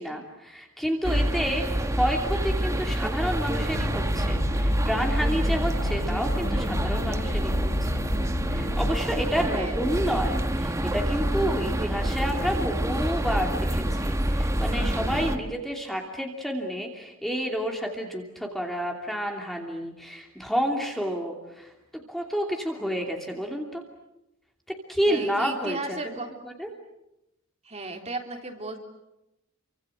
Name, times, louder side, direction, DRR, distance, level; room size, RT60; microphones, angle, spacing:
voice 1, 0.0-8.0 8.5-23.8 24.9-26.0 26.6-26.7, equal, ahead, 1 dB, 2.8 m, -30 dB
sound 1, 1.0-15.4, right 1 dB, 15° right, 1.4 m, -27 dB
sound 2, 3.7-9.0, left 2 dB, 80° left, 1.3 m, -34 dB
voice 2, 9.5-9.8 25.1-26.3 27.6-28.8, right 2 dB, 30° right, 3 dB, 3.4 m, -35 dB
29.5 x 25.0 x 7.9 m, 0.91 s
head